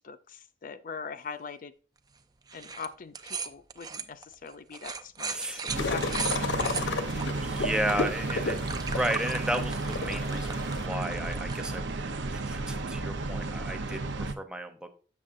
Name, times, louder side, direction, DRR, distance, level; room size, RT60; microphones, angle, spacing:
voice 1, 0.0-1.7 2.5-7.1, left 5 dB, 50° left, 11 dB, 0.5 m, -42 dB
sound 1, 2.5-2.9 3.1-7.2 7.8-11.7, right 5 dB, 20° right, 0.5 m, -38 dB
voice 2, 5.3-5.6 6.1-6.3 7.4-11.9 12.3-14.9, right 1 dB, 5° right, 6 dB, 0.8 m, -34 dB
sound 2, 5.7-14.3, right 3 dB, 70° right, 0.8 m, -33 dB
sound 3, 5.8-10.9, left 3 dB, 80° left, 0.9 m, -33 dB
7.2 x 7.2 x 2.6 m, 0.38 s
head